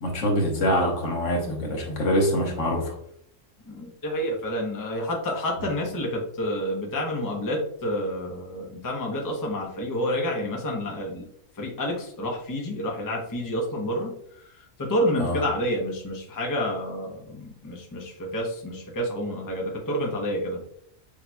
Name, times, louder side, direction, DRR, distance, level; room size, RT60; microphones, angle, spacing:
voice 1, 0.0-2.9 15.2-15.4, equal, 70° left, 1 dB, 1.3 m, -24 dB
voice 2, 3.7-11.2 11.6-14.1 14.4-20.6, equal, 20° left, 0 dB, 0.6 m, -29 dB
6.4 x 2.9 x 2.2 m, 0.70 s
omnidirectional pair, 1.4 m